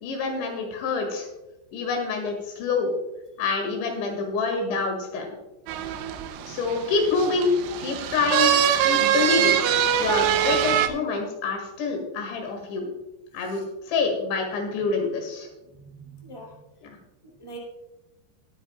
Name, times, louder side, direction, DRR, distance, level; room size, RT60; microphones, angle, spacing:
voice 1, 0.0-1.3 1.7-2.9 3.4-5.4 6.5-8.5 8.8-9.6 10.0-12.9 13.3-15.5 16.8-17.0, left 4 dB, 90° left, 2 dB, 4.3 m, -26 dB
sound 1, 5.7-10.9, right 9 dB, 80° right, 2.8 m, -23 dB
voice 2, 15.8-16.5 17.4-17.6, right 3 dB, 20° right, -3 dB, 0.8 m, -43 dB
21.0 x 8.9 x 2.4 m, 1.0 s
omnidirectional pair, 5.1 m